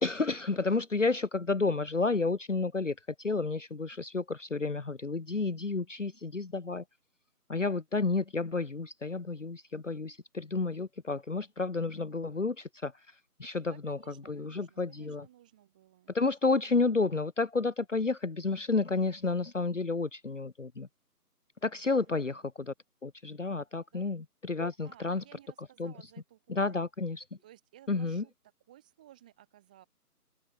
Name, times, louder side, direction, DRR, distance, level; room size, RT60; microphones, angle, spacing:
voice 1, 0.0-6.8 7.5-12.9 13.4-15.3 16.1-20.9 21.6-22.7 23.0-25.2 25.8-25.9 26.5-27.2 27.9-28.2, left 3 dB, 50° left, 1.0 m, -31 dB
voice 2, 13.7-16.1 22.0-22.4 23.9-24.2 24.8-26.9 27.4-28.3 28.7-29.9, right 13 dB, 5° right, 3.4 m, -58 dB
open air
figure-of-eight pair, 175°, 46 cm